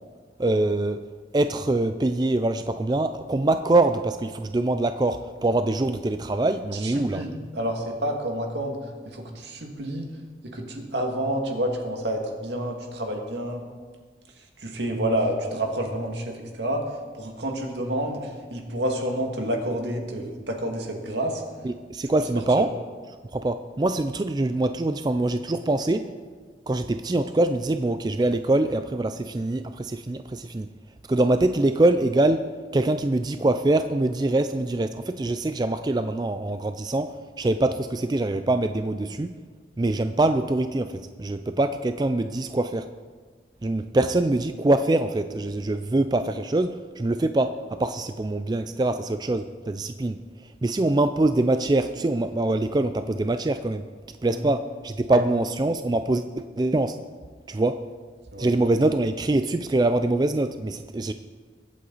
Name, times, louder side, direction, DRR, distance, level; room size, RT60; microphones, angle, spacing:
voice 1, 0.4-1.0 1.3-7.2 21.6-22.7 23.3-26.1 26.7-30.7 31.1-39.4 39.8-42.9 43.6-53.9 54.2-57.0 57.5-57.8 58.4-61.1, right 2 dB, 25° right, 10 dB, 0.3 m, -24 dB
voice 2, 6.7-10.1 10.4-13.6 14.4-16.8 17.1-21.4 54.2-54.4 55.1-55.2 58.3-58.5, right 1 dB, 80° right, 2 dB, 2.1 m, -29 dB
22.0 x 8.5 x 4.1 m, 1.5 s
head